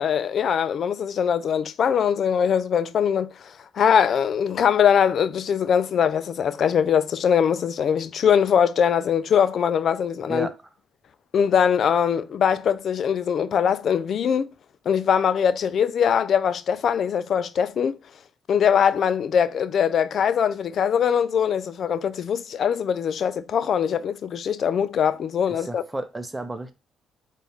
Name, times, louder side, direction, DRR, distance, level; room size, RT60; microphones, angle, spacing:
voice 1, 0.0-10.5 11.3-14.5 14.9-18.0 18.5-25.8, left 8 dB, 60° left, 0.3 m, -22 dB
voice 2, 25.5-26.7, right 2 dB, 15° right, 0.6 m, -32 dB
4.1 x 2.3 x 3.4 m
cardioid pair, 90°, 0 cm